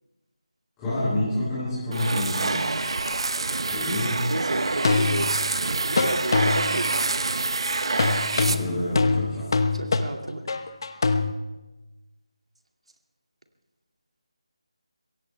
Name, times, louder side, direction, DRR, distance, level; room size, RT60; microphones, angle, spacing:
voice 1, 0.8-2.7 3.7-4.2 8.3-9.5, left 1 dB, 10° left, -12 dB, 5.2 m, -28 dB
sound 1, 1.9-9.0, right 3 dB, 55° right, 0.9 m, -27 dB
sound 2, 3.1-3.2 4.8-5.6 6.0-6.9 8.0-11.3, left 4 dB, 45° left, 0.9 m, -24 dB
voice 2, 4.3-7.0 9.7-10.4, right 1 dB, 75° right, 4 dB, 2.3 m, -31 dB
23.0 x 16.5 x 3.4 m, 1.1 s
figure-of-eight pair, 165°, 3 cm